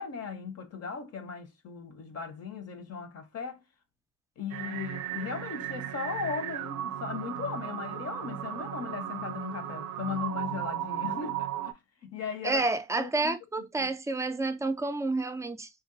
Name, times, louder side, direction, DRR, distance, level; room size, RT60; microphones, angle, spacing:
voice 1, 0.0-3.6 4.4-12.6 13.0-13.4 13.8-13.9, left 6 dB, 55° left, 0.7 m, -37 dB
sound 1, 4.5-11.7, right 12 dB, 70° right, 0.4 m, -36 dB
voice 2, 12.4-15.7, right 3 dB, 10° right, 0.4 m, -29 dB
2.7 x 2.3 x 3.7 m
cardioid pair, 90°, 30 cm